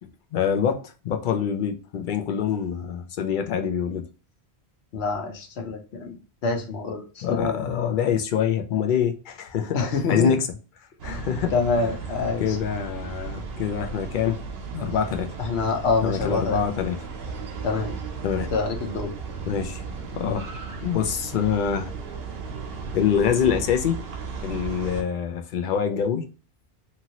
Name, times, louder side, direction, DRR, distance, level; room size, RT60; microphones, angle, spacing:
voice 1, 0.0-4.0 7.2-10.5 11.0-11.5 11.8-11.9 12.4-14.4 14.7-15.3 16.0-17.0 18.2-18.5 19.5-19.8 20.2-20.5 20.8-21.9 22.9-24.0 24.4-26.2, left 8 dB, 60° left, 0.6 m, -25 dB
voice 2, 4.9-6.2 6.4-7.6 9.7-10.3 11.1-12.6 15.4-16.6 17.6-18.0 18.5-19.1, left 4 dB, 85° left, 1.0 m, -26 dB
sound 1, 11.0-25.0, right 5 dB, 70° right, 0.8 m, -35 dB
2.9 x 2.7 x 2.8 m
omnidirectional pair, 1.1 m